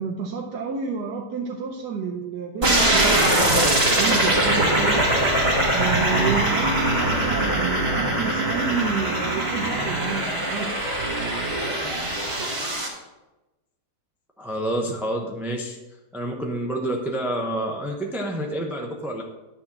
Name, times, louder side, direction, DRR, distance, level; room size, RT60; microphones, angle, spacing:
voice 1, 0.0-5.1 5.7-10.7, right 5 dB, 85° right, 0 dB, 1.4 m, -30 dB
sound 1, 2.6-12.9, right 1 dB, 40° right, 2.1 m, -22 dB
voice 2, 14.4-15.8 16.1-19.2, right 1 dB, ahead, 1 dB, 0.5 m, -28 dB
10.0 x 4.3 x 7.2 m, 1.1 s
omnidirectional pair, 1.7 m